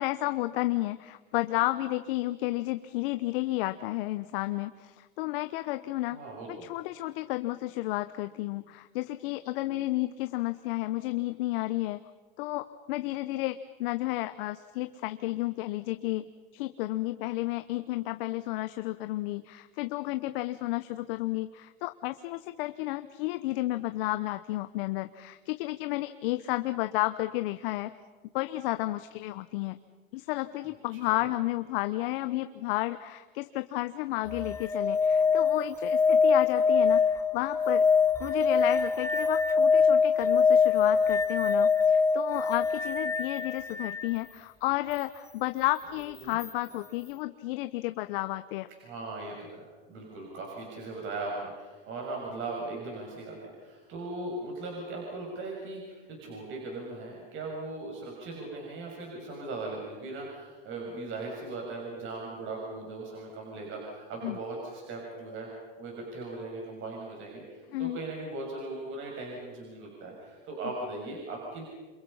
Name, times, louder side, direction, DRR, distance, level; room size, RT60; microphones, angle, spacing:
voice 1, 0.0-6.2 6.5-12.0 12.4-27.9 28.3-29.8 30.1-37.9 38.2-48.7 64.2-64.4 67.7-68.0, left 18 dB, 65° left, 10 dB, 1.0 m, -32 dB
voice 2, 6.1-6.7 30.9-31.2 46.2-46.4 48.8-65.5 65.8-71.6, right 2 dB, 40° right, -1 dB, 6.7 m, -39 dB
sound 1, 34.3-44.1 46.4-46.5, left 5 dB, 10° left, 0.8 m, -24 dB
28.5 x 28.0 x 5.6 m, 1.4 s
supercardioid pair, 120°, 30 cm